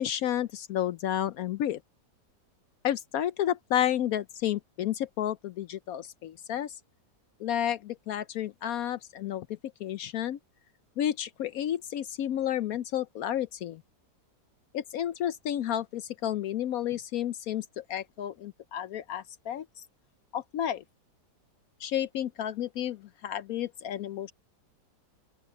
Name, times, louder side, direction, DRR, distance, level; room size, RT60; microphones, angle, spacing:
voice 1, 0.0-1.8 2.8-6.8 7.4-10.4 11.0-13.8 14.7-19.6 20.3-20.8 21.8-24.3, left 11 dB, 70° left, 0.9 m, -31 dB
open air
omnidirectional pair, 1.8 m